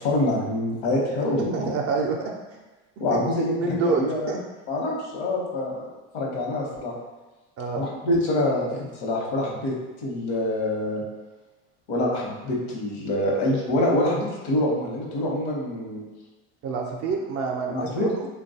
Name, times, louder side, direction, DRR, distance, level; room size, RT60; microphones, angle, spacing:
voice 1, 0.0-1.7 3.0-4.3 4.7-5.8 6.1-6.9 7.8-9.7 10.0-11.0 11.9-16.0 17.7-18.1, left 1 dB, 80° left, -3 dB, 0.9 m, -25 dB
voice 2, 1.5-2.3 3.1-3.2 3.6-4.4 7.6-7.8 16.6-18.3, right 4 dB, 45° right, 0 dB, 0.4 m, -27 dB
3.1 x 2.2 x 2.7 m, 1.2 s
supercardioid pair, 110°, 33 cm